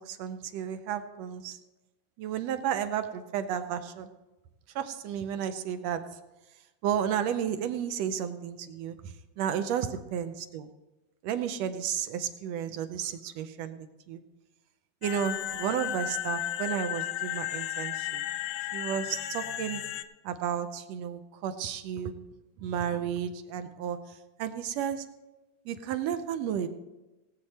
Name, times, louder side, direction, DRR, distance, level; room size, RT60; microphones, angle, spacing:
voice 1, 0.0-1.6 2.2-4.1 4.7-6.0 6.8-10.7 11.2-14.2 15.0-18.2 18.7-19.8 20.2-22.1 22.6-25.0 25.6-26.7, right 9 dB, 75° right, 10 dB, 1.6 m, -32 dB
sound 1, 15.0-20.0, left 12 dB, 80° left, 1.8 m, -34 dB
17.5 x 8.3 x 4.2 m, 1.1 s
omnidirectional pair, 3.4 m